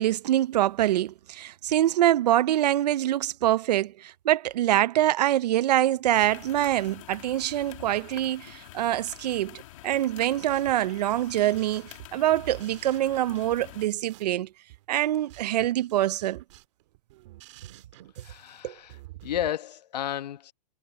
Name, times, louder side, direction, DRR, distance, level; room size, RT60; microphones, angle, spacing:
voice 1, 0.0-14.5 14.9-16.4 18.6-18.7, right 13 dB, 75° right, 0.6 m, -25 dB
sound 1, 6.1-13.9, left 16 dB, 50° left, 2.5 m, -47 dB
sound 2, 9.9-19.5, right 18 dB, 45° right, 1.8 m, -49 dB
voice 2, 18.2-20.5, left 11 dB, 80° left, 1.4 m, -33 dB
supercardioid pair, 165°, 21 cm